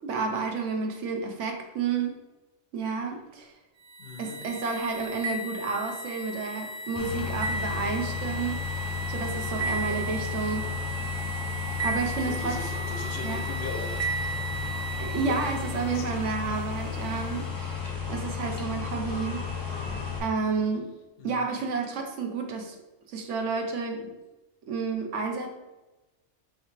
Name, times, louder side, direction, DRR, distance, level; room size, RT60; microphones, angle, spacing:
voice 1, 0.0-2.2 2.7-3.5 4.2-10.7 11.8-12.6 13.2-13.4 15.0-19.4 20.2-20.9 21.2-22.8 23.1-24.1 24.7-25.5, right 4 dB, 80° right, 1.0 m, -31 dB
sound 1, 3.8-16.0, right 3 dB, 65° right, 0.4 m, -35 dB
voice 2, 4.0-4.4 9.7-10.1 12.2-14.1 15.1-15.4 15.9-16.2 21.2-21.5, left 5 dB, 60° left, 0.7 m, -39 dB
sound 2, 7.0-20.2, left 7 dB, 25° left, 0.5 m, -33 dB
sound 3, 10.9-18.1 19.1-20.2, left 1 dB, 45° right, 1.2 m, -47 dB
4.6 x 3.3 x 3.1 m
omnidirectional pair, 1.2 m